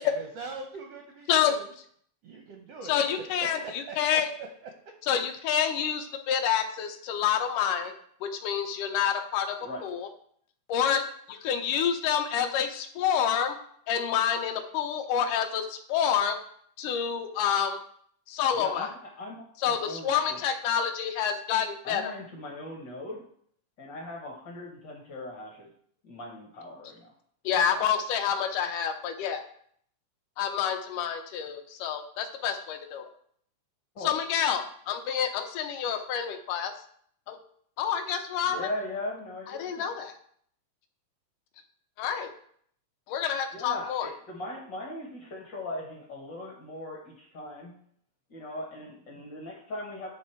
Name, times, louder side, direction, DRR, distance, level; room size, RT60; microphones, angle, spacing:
voice 1, 0.0-1.7 2.2-5.0, right 4 dB, 80° right, 3 dB, 1.4 m, -43 dB
voice 2, 2.9-4.3 5.1-7.9 8.2-9.6 9.8-10.1 10.7-11.0 11.3-13.6 13.9-16.4 16.8-17.8 18.3-18.9 19.6-22.1 27.5-29.4 30.4-33.1 34.0-36.7 37.3-37.4 37.8-38.7 39.5-40.1 42.0-42.3 43.1-44.1, left 8 dB, 80° left, 5 dB, 2.2 m, -28 dB
voice 3, 18.6-18.9 19.2-19.4 19.7-20.4 21.8-23.2 23.8-25.7 26.0-27.1 33.9-34.1 38.5-39.8 43.5-47.7 48.3-50.1, left 1 dB, 65° left, -1 dB, 1.1 m, -39 dB
10.0 x 3.4 x 4.4 m, 0.63 s
omnidirectional pair, 3.6 m